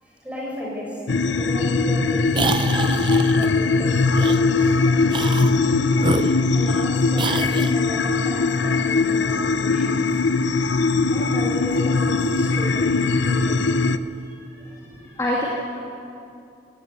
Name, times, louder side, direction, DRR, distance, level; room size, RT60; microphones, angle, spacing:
voice 1, 0.0-2.2 2.6-5.9 6.5-10.2 11.0-13.6 14.8-15.0, left 1 dB, 5° right, -4 dB, 6.8 m, -34 dB
sound 1, 1.1-14.0, left 3 dB, 85° left, 0.7 m, -20 dB
sound 2, 2.3-3.5 4.1-4.4 5.1-5.6 6.0-6.8 7.2-7.8, right 4 dB, 25° right, 0.5 m, -27 dB
voice 2, 10.7-11.1 14.4-15.5, left 1 dB, 15° left, -4 dB, 2.6 m, -30 dB
18.5 x 17.5 x 9.6 m, 2.6 s
head